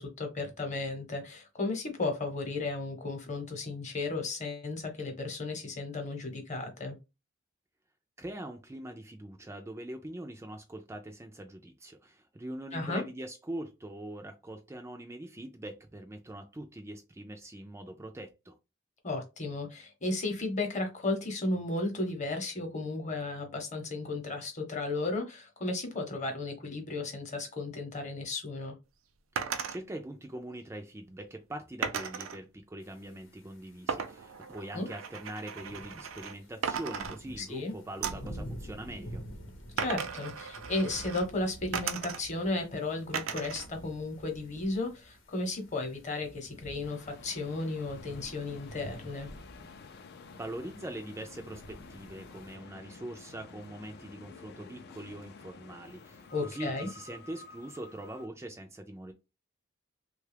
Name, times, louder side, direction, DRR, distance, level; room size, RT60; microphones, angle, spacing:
voice 1, 0.0-7.0 12.7-13.0 19.0-28.7 34.7-34.9 37.4-37.7 39.8-49.3 56.3-56.9, left 2 dB, 35° left, 0.9 m, -34 dB
voice 2, 8.2-18.5 29.4-39.2 50.3-59.1, right 1 dB, 15° right, 0.3 m, -43 dB
sound 1, 29.4-29.8 31.8-32.4 33.9-36.4 36.6-37.6 38.0-38.3 39.8-41.3 41.7-42.5 43.1-43.7 44.0-44.8, right 6 dB, 80° right, 0.5 m, -36 dB
sound 2, 32.8-52.5, equal, 70° left, 0.8 m, -49 dB
sound 3, 46.8-58.3, left 4 dB, 55° left, 0.4 m, -51 dB
3.2 x 2.3 x 3.3 m
head